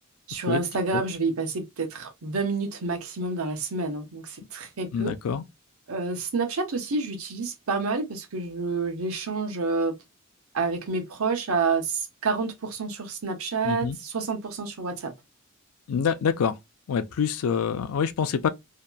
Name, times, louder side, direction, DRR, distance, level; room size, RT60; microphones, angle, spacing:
voice 1, 0.3-5.1 5.9-9.9 10.5-15.1, right 4 dB, 70° right, 0.7 m, -29 dB
voice 2, 4.9-5.4 13.6-14.0 15.9-16.6 16.9-18.5, left 6 dB, 70° left, 0.4 m, -26 dB
2.8 x 2.2 x 2.2 m
head